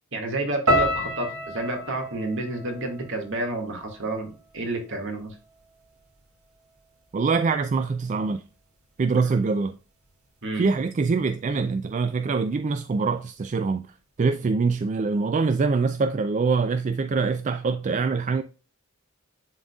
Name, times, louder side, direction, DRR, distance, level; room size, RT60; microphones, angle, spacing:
voice 1, 0.1-5.4 10.4-10.7, right 2 dB, 60° right, 2.0 m, -30 dB
sound 1, 0.7-4.9 5.1-5.9 6.5-6.7, equal, 80° right, 2.2 m, -30 dB
voice 2, 7.1-8.4 9.0-9.7 10.6-13.9 14.2-18.4, right 4 dB, 35° right, 0.3 m, -24 dB
11.0 x 3.9 x 2.3 m
head